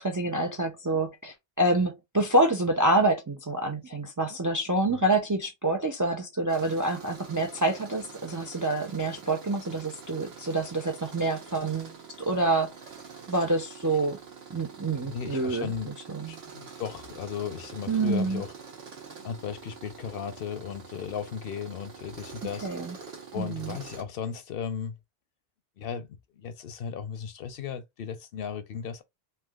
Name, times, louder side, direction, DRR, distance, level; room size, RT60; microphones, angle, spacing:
voice 1, 0.0-12.8 13.3-14.2 14.5-15.7 16.1-16.4 17.9-18.4 22.6-23.0 23.3-23.8, right 2 dB, 35° right, 0.3 m, -27 dB
Tools, 6.5-24.0, right 5 dB, 75° right, 1.1 m, -46 dB
voice 2, 14.9-15.9 16.2-18.5 19.2-22.7 23.3-25.0 25.8-26.1 26.3-29.0, left 7 dB, 65° left, 0.7 m, -36 dB
3.3 x 2.8 x 2.3 m
omnidirectional pair, 1.1 m